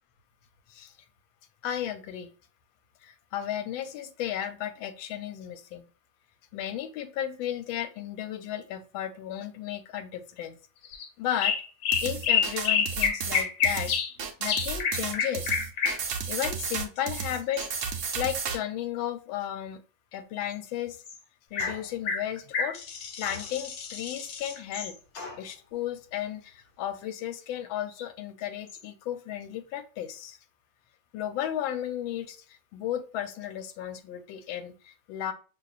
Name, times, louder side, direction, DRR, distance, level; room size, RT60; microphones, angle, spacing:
voice 1, 1.6-2.3 3.0-5.8 6.5-10.6 11.2-11.6 12.0-13.9 14.4-15.6 16.3-19.8 20.1-21.0 21.5-22.8 23.2-25.0 25.4-30.4 31.1-35.3, left 11 dB, 90° left, 10 dB, 1.4 m, -34 dB
sound 1, 10.8-11.1 11.4-14.1 14.5-17.7 21.0-21.2 21.6-21.8 22.0-24.9 27.9-28.0 28.7-28.8, left 7 dB, 70° left, 1.4 m, -29 dB
sound 2, 11.9-18.6, right 6 dB, 80° right, 0.6 m, -33 dB
sound 3, 21.6-22.1 23.2-23.9 25.1-25.6, left 3 dB, 55° left, 1.3 m, -41 dB
5.9 x 2.8 x 2.4 m, 0.35 s
omnidirectional pair, 2.1 m